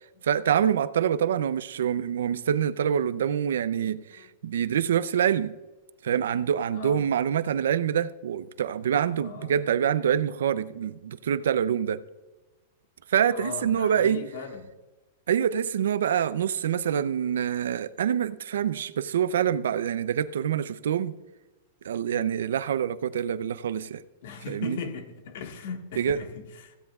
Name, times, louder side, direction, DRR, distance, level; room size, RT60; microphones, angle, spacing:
voice 1, 0.2-5.5 6.0-12.0 13.1-14.2 15.3-21.1 21.8-24.0 24.5-24.8 26.0-26.2, right 9 dB, 85° right, 0.5 m, -26 dB
voice 2, 6.7-7.1 9.2-9.5 13.3-14.6 24.2-26.8, left 5 dB, 55° left, 1.6 m, -38 dB
16.5 x 16.0 x 2.4 m
supercardioid pair, 175°, 0 cm